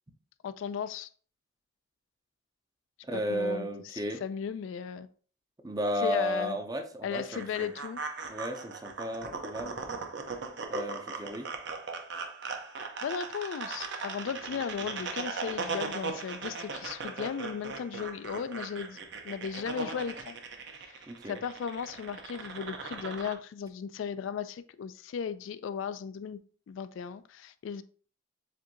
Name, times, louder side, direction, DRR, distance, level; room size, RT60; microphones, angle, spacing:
voice 1, 0.4-1.1 3.1-5.1 6.0-6.6 7.0-8.0 13.0-19.0 19.2-20.4 20.8-21.0 21.3-26.4 26.7-27.8, left 7 dB, 70° left, 0.3 m, -36 dB
voice 2, 3.1-4.2 5.6-7.7 8.3-9.8 10.7-11.5 21.1-21.4, equal, 20° right, 0.5 m, -34 dB
sound 1, 7.1-23.3, right 4 dB, 55° right, 0.7 m, -39 dB
7.5 x 2.6 x 2.6 m
head